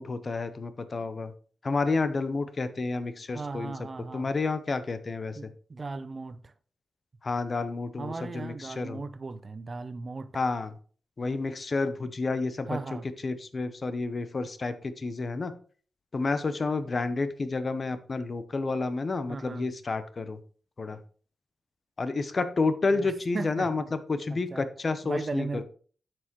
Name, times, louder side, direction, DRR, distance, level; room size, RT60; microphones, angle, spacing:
voice 1, 0.0-1.3 1.6-3.7 4.1-5.4 7.2-9.0 10.3-10.7 11.2-12.7 13.2-15.5 16.1-20.4 20.8-21.0 22.0-25.6, left 3 dB, 45° left, 0.8 m, -30 dB
voice 2, 3.3-4.3 5.4-6.5 8.0-10.4 12.7-13.1 19.3-19.7 22.9-23.9 24.3-24.7 25.0-25.6, right 3 dB, 45° right, 0.6 m, -37 dB
9.5 x 6.2 x 3.1 m
cardioid pair, 60°, 0 cm